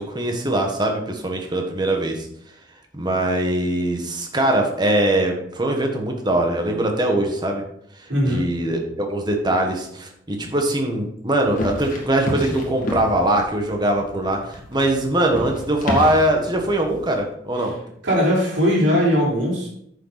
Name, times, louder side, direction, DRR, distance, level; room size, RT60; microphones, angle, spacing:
voice 1, 0.0-2.3 2.9-7.6 7.9-17.7, right 1 dB, 20° right, 2 dB, 1.4 m, -22 dB
voice 2, 8.1-8.5 17.6-17.7 18.0-19.7, equal, 70° right, -4 dB, 4.0 m, -19 dB
sound 1, 11.4-17.2, left 1 dB, 45° left, 2.0 m, -31 dB
9.5 x 6.7 x 4.1 m, 0.71 s
head